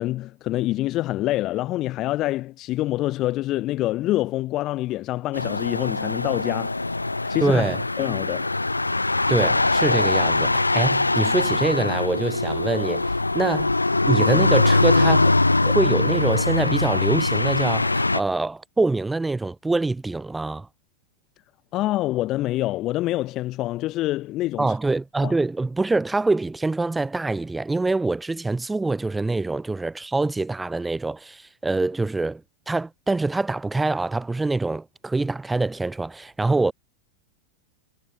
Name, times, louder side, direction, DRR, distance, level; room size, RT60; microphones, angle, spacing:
voice 1, 0.0-6.7 7.2-7.6 8.0-8.5 21.7-24.7 25.2-25.3, left 16 dB, 35° left, 3.9 m, -26 dB
sound 1, 5.3-18.2, left 2 dB, 85° left, 4.5 m, -22 dB
voice 2, 7.4-7.8 9.3-13.1 13.3-13.7 14.0-20.7 24.6-32.4 32.7-36.7, right 3 dB, 10° right, 3.4 m, -25 dB
figure-of-eight pair, 90°, 0 cm